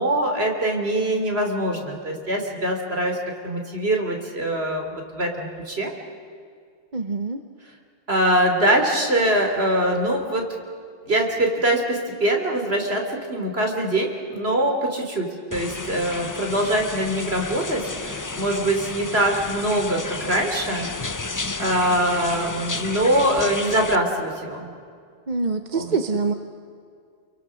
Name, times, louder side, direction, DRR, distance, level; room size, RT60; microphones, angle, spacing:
voice 1, 0.0-3.2 3.4-5.9 8.1-10.5 11.1-20.9 21.6-24.7 25.7-25.9, right 1 dB, 55° right, 2 dB, 3.5 m, -23 dB
voice 2, 6.9-7.4 25.3-26.3, right 4 dB, 40° right, 7 dB, 1.1 m, -25 dB
sound 1, 15.5-24.0, left 3 dB, 20° left, 0.6 m, -32 dB
29.5 x 23.0 x 6.4 m, 2.2 s
omnidirectional pair, 1.2 m